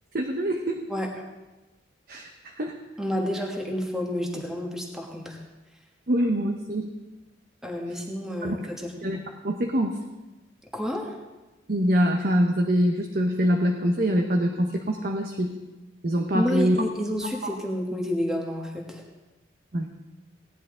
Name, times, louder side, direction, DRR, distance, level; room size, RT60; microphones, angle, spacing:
voice 1, 0.1-0.9 2.1-2.7 6.1-6.9 8.4-8.6 9.0-10.0 11.7-15.6 16.0-16.8 17.4-17.6 19.7-19.9, equal, 50° right, 3 dB, 0.8 m, -24 dB
voice 2, 3.0-5.4 7.6-8.9 10.7-11.1 16.3-19.0, left 1 dB, 5° right, 0 dB, 1.4 m, -29 dB
17.0 x 10.5 x 3.8 m, 1.1 s
head